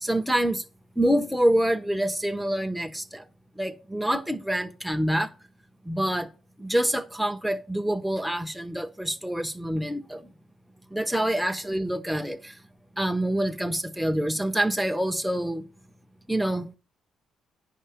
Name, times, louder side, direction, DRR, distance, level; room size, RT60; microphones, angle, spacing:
voice 1, 0.0-0.6 1.0-3.2 3.6-5.3 5.9-6.3 6.6-10.2 10.9-12.5 13.0-15.6 16.3-16.8, right 1 dB, ahead, 0.8 m, -26 dB
9.7 x 5.7 x 5.0 m
cardioid pair, 90°, 0 cm